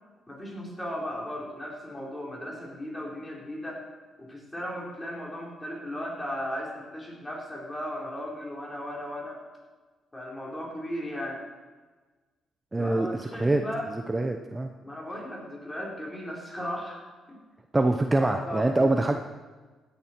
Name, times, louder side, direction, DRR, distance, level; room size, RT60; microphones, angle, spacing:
voice 1, 0.3-3.8 4.2-9.4 10.1-11.4 12.8-13.9 14.8-17.0 17.3-17.4 18.2-19.2, equal, 15° left, -3 dB, 4.4 m, -36 dB
voice 2, 12.7-13.1 13.4-13.6 14.1-14.7 17.7-19.2, right 2 dB, 20° right, 5 dB, 0.7 m, -24 dB
16.0 x 10.0 x 4.6 m, 1.3 s
cardioid pair, 90°, 0 cm